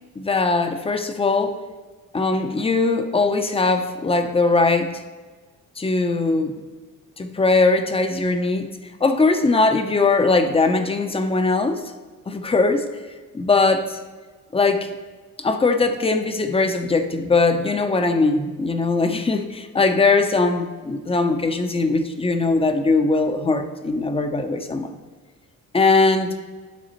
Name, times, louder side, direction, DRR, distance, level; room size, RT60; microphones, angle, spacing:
voice 1, 0.2-1.5 2.1-5.0 5.8-6.6 7.2-8.7 9.0-11.8 12.3-12.9 13.3-14.0 14.5-14.9 15.4-24.9 25.7-26.3, left 3 dB, 20° left, 7 dB, 0.6 m, -20 dB
11.5 x 4.0 x 3.0 m, 1.3 s
cardioid pair, 90°, 30 cm